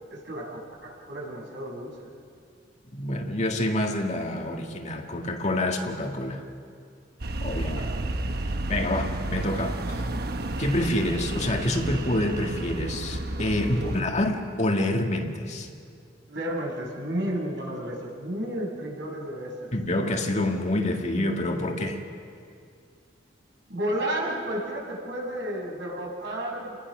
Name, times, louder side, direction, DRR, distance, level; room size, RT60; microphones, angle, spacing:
voice 1, 0.0-2.1 7.6-8.0 13.7-14.0 16.3-19.7 23.7-26.8, right 1 dB, 75° right, -2 dB, 6.4 m, -32 dB
voice 2, 2.9-6.4 7.4-7.8 8.7-10.1 10.6-15.7 19.7-22.0, left 1 dB, 40° left, 2 dB, 1.9 m, -27 dB
sound 1, 7.2-14.0, right 1 dB, 60° right, 1.1 m, -31 dB
30.0 x 20.5 x 6.2 m, 2.3 s
head